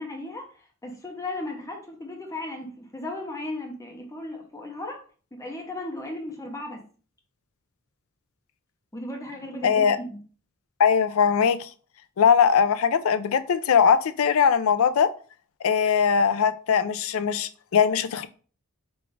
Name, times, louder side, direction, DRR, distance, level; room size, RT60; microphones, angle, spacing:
voice 1, 0.0-5.0 5.3-6.8 8.9-10.2, left 2 dB, 15° left, 0.7 m, -36 dB
voice 2, 9.6-10.0 10.8-11.7 12.2-15.1 15.6-18.3, left 7 dB, 70° left, 0.4 m, -21 dB
4.0 x 2.4 x 4.6 m
head